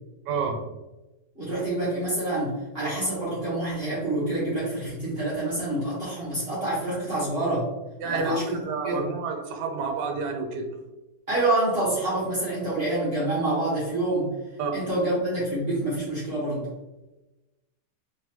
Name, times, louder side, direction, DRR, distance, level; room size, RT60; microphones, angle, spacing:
voice 1, 0.3-0.6 8.0-10.7 14.6-14.7, right 4 dB, 75° right, 4 dB, 1.3 m, -29 dB
voice 2, 1.3-7.7 8.0-9.1 11.3-14.3 14.7-16.7, right 1 dB, 35° right, -9 dB, 1.5 m, -27 dB
3.7 x 3.1 x 2.9 m, 1.0 s
omnidirectional pair, 1.9 m